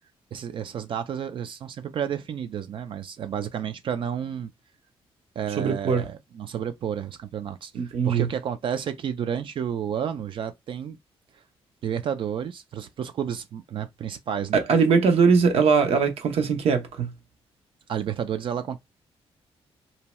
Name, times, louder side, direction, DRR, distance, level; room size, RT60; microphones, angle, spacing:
voice 1, 0.3-4.5 5.4-11.0 11.3-11.4 11.8-14.6 17.9-18.8, right 8 dB, 55° right, 0.4 m, -31 dB
voice 2, 5.6-6.0 7.7-8.3 14.5-17.1, right 5 dB, 70° right, 0.8 m, -21 dB
2.7 x 2.2 x 3.0 m
cardioid pair, 120°, 10 cm